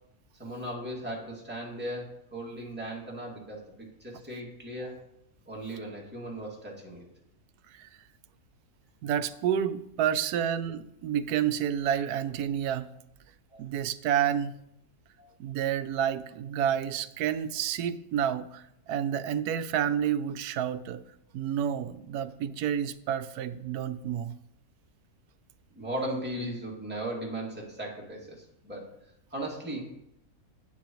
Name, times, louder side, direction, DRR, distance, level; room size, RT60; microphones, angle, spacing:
voice 1, 0.4-5.0 5.5-7.0 13.5-13.6 15.2-15.3 25.8-28.9 29.3-29.9, right 1 dB, 5° right, 2.3 m, -37 dB
voice 2, 9.0-12.9 13.6-14.6 15.4-21.0 21.3-24.3, right 9 dB, 80° right, 1.1 m, -29 dB
11.5 x 9.2 x 3.1 m
omnidirectional pair, 1.7 m